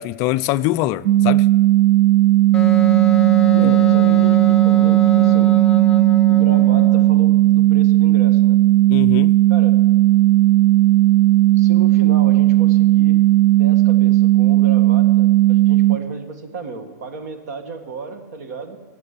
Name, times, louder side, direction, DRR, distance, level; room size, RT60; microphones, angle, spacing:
voice 1, 0.0-1.5 3.6-3.7 8.9-9.4, left 16 dB, 30° left, 0.3 m, -23 dB
sound 1, 1.1-16.0, right 16 dB, 45° right, 0.3 m, -14 dB
Wind instrument woodwind instrument, 2.5-7.2, right 1 dB, 5° left, 0.8 m, -25 dB
voice 2, 3.5-5.5 6.3-8.6 9.5-9.8 11.6-13.2 13.5-18.8, right 4 dB, 60° right, 1.8 m, -33 dB
17.0 x 7.5 x 8.4 m
hypercardioid pair, 145°, 10 cm